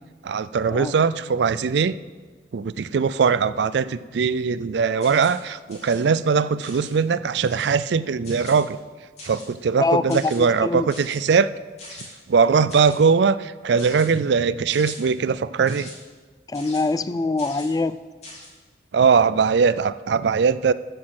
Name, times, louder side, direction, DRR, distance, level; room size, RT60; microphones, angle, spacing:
voice 1, 0.2-2.0 2.5-8.8 9.2-11.5 12.3-15.9 18.9-20.7, right 5 dB, 65° right, 16 dB, 0.4 m, -20 dB
sound 1, 5.0-5.4 5.7-6.0 6.6-7.0 7.4-7.7 8.2-8.6 9.2-9.5 10.1-10.4 10.9-11.2 11.8-12.1 12.7-13.0 13.8-14.1 14.7-15.0 15.7-15.9 16.5-16.8 17.4-17.7 18.2-18.5, left 2 dB, 35° left, 3.3 m, -42 dB
voice 2, 9.8-10.9 16.5-18.0, left 3 dB, 20° left, 14 dB, 0.3 m, -24 dB
13.0 x 6.4 x 7.7 m, 1.4 s
head